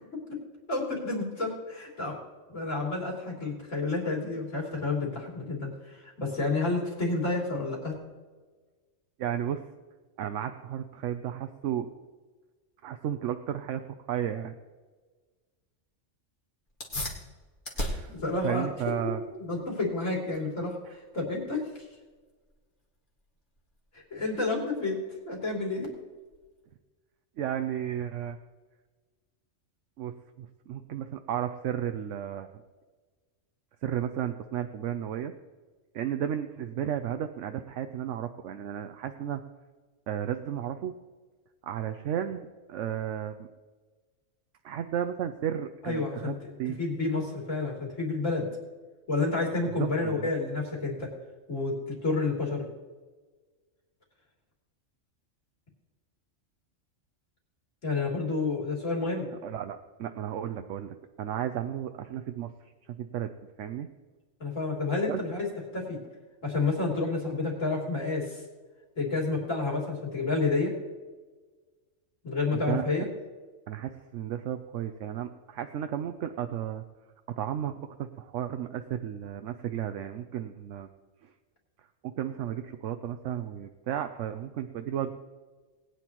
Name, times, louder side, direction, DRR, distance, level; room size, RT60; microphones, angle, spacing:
voice 1, 0.7-2.2 2.5-7.9 18.1-19.1 19.4-21.9 23.9-25.0 25.3-25.9 45.8-46.3 46.8-48.5 49.1-51.1 51.5-52.7 57.8-59.3 64.4-65.5 65.7-66.0 66.4-68.4 68.9-70.7 72.2-73.1, left 3 dB, 85° left, -2 dB, 3.6 m, -30 dB
voice 2, 9.2-9.7 10.2-11.9 12.8-13.8 14.1-14.5 17.7-18.2 18.4-19.2 20.8-20.9 27.4-28.4 30.0-32.5 33.8-35.3 35.9-39.4 40.1-40.9 41.6-43.5 44.6-46.8 49.8-50.3 59.4-63.3 63.6-63.9 65.1-65.2 72.5-72.8 73.7-76.8 77.4-80.9 82.0-85.2, right 10 dB, 75° right, 8 dB, 1.0 m, -33 dB
sound 1, 16.7-26.7, equal, 40° left, 2.1 m, -42 dB
19.5 x 9.6 x 3.0 m, 1.4 s
omnidirectional pair, 1.3 m